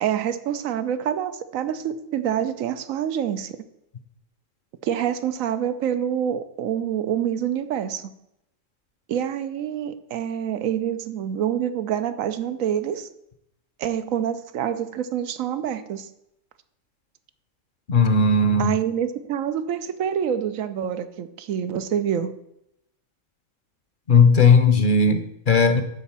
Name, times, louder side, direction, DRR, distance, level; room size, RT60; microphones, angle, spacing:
voice 1, 0.0-3.6 4.8-8.1 9.1-13.1 13.8-16.1 18.6-22.3, right 9 dB, 85° right, 11 dB, 1.1 m, -26 dB
voice 2, 17.9-18.8 24.1-25.8, left 4 dB, 45° left, 9 dB, 0.7 m, -17 dB
10.0 x 4.2 x 7.2 m, 0.81 s
omnidirectional pair, 1.4 m